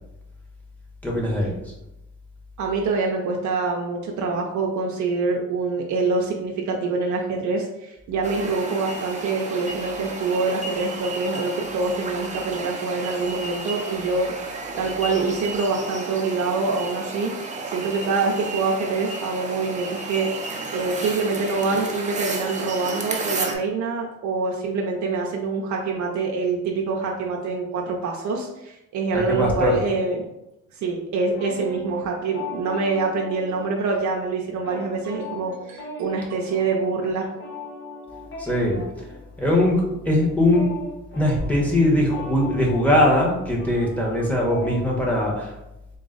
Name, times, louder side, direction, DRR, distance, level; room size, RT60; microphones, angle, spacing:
voice 1, 1.0-1.5 29.1-29.8 38.4-38.8 39.4-40.7 41.1-45.5, left 1 dB, 5° left, -3 dB, 1.3 m, -21 dB
voice 2, 2.6-14.3 14.8-17.3 17.7-20.4 20.7-30.2 30.7-37.3, right 4 dB, 70° right, 0 dB, 0.6 m, -25 dB
sound 1, 8.2-23.5, right 3 dB, 25° right, 0.7 m, -32 dB
sound 2, 31.3-34.0 34.3-44.9, left 2 dB, 40° left, 0.9 m, -39 dB
3.9 x 2.4 x 3.9 m, 0.92 s
cardioid pair, 90°, 30 cm